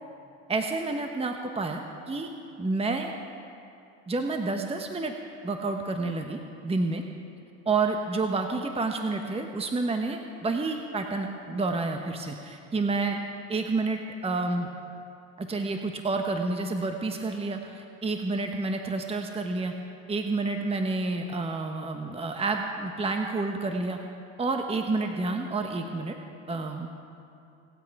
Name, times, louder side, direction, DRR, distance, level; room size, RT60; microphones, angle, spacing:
voice 1, 0.5-2.3 2.6-3.1 4.1-5.1 5.4-7.0 7.7-13.2 13.5-14.7 15.4-19.7 20.1-24.0 24.4-26.2 26.5-26.9, right 3 dB, 15° right, 4 dB, 1.0 m, -29 dB
25.5 x 8.8 x 4.8 m, 2.6 s
supercardioid pair, 90°, 37 cm